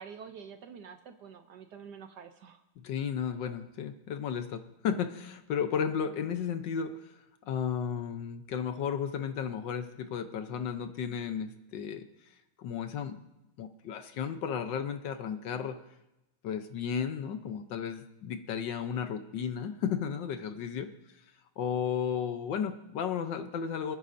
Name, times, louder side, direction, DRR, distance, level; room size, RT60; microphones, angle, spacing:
voice 1, 0.0-2.6, right 6 dB, 65° right, 7 dB, 1.1 m, -47 dB
voice 2, 2.8-7.1 7.4-12.1 12.6-13.2 13.6-15.8 16.4-20.9 21.6-24.0, left 7 dB, 65° left, 8 dB, 1.3 m, -34 dB
28.0 x 9.9 x 2.6 m, 0.96 s
omnidirectional pair, 2.3 m